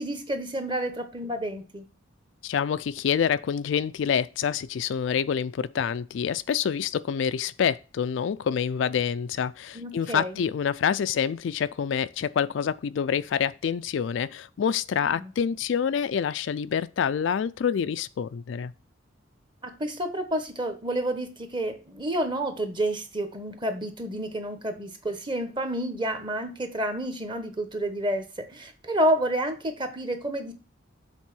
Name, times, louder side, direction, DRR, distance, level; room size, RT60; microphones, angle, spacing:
voice 1, 0.0-1.8 9.7-10.4 15.0-15.3 19.6-30.5, right 1 dB, 25° right, 1.2 m, -29 dB
voice 2, 2.4-18.7, left 7 dB, 65° left, 0.3 m, -27 dB
7.2 x 4.0 x 6.1 m
head